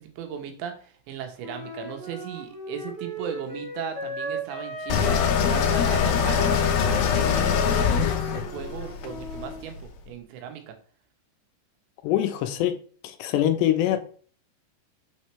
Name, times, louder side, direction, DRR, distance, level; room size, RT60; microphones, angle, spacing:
voice 1, 0.0-10.7, right 8 dB, 80° right, 3.3 m, -37 dB
Wind instrument woodwind instrument, 1.4-5.4 5.6-9.6, equal, 45° right, 0.7 m, -36 dB
sound 1, 4.9-9.8, left 7 dB, 70° left, 2.5 m, -23 dB
voice 2, 12.0-12.8 13.0-14.0, left 11 dB, 90° left, 2.9 m, -23 dB
6.8 x 6.4 x 3.3 m
omnidirectional pair, 5.1 m